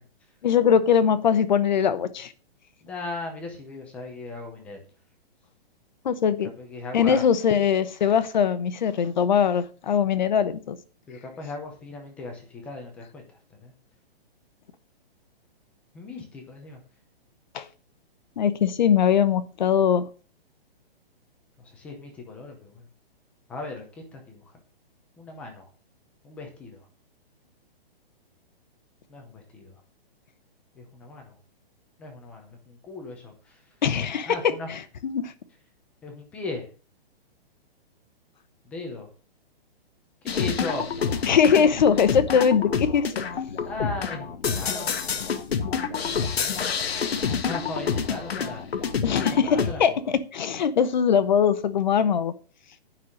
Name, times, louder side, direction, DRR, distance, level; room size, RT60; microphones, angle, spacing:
voice 1, 0.4-2.3 6.0-6.5 6.9-10.8 17.5-17.7 18.4-20.0 33.8-35.3 41.3-43.2 49.0-52.3, left 7 dB, 50° left, 1.0 m, -21 dB
voice 2, 2.8-4.8 6.6-7.3 11.1-13.3 13.5-13.7 15.9-16.8 21.6-22.8 23.5-24.4 25.2-25.6 26.2-26.8 29.1-29.7 30.8-31.3 32.0-33.6 34.3-34.7 36.0-36.7 38.6-39.1 40.2-40.9 43.6-44.9 46.1-46.7 47.3-48.6 49.4-50.0, left 3 dB, 5° left, 0.6 m, -37 dB
sound 1, 40.3-49.7, left 6 dB, 80° left, 1.5 m, -28 dB
9.8 x 5.7 x 6.4 m
hypercardioid pair, 175°, 31 cm